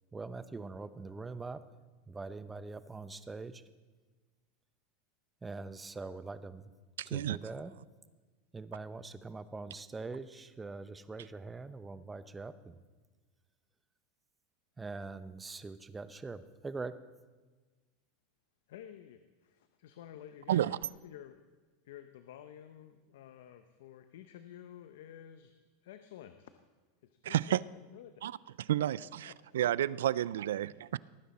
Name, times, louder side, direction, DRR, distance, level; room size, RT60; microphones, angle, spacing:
voice 1, 0.1-1.6 2.1-3.6 5.4-6.6 7.1-7.8 8.5-12.8 14.8-17.0, right 3 dB, 15° right, 13 dB, 0.6 m, -43 dB
voice 2, 7.0-7.4 20.5-20.8 27.2-27.6 28.2-28.3 28.7-31.0, right 12 dB, 90° right, 21 dB, 0.3 m, -31 dB
voice 3, 18.7-20.7 21.0-21.5 21.8-25.5 25.8-26.5 27.0-28.3 28.8-29.6 30.0-30.1, left 10 dB, 75° left, 9 dB, 0.7 m, -52 dB
18.5 x 9.4 x 4.2 m, 1.3 s
supercardioid pair, 125°, 0 cm